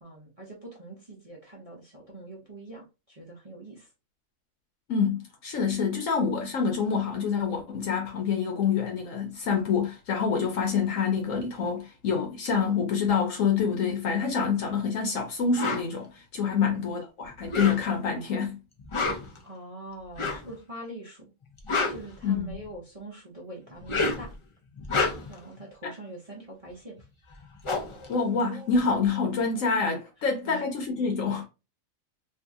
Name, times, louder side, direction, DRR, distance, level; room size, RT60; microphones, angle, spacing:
voice 1, 0.0-3.9 16.6-16.8 19.4-21.3 21.9-24.4 25.3-27.1 30.2-30.7, right 2 dB, 35° right, 0.7 m, -43 dB
voice 2, 4.9-18.6 22.2-22.6 25.8-25.9 28.1-31.4, left 6 dB, 75° left, 1.1 m, -27 dB
sound 1, 15.6-15.9 17.4-18.1 18.8-19.4 20.1-20.5 21.4-22.7 23.7-24.3 24.8-25.4 27.0-27.1 27.3-29.0, left 3 dB, 40° left, 0.4 m, -29 dB
2.7 x 2.6 x 3.5 m
omnidirectional pair, 1.4 m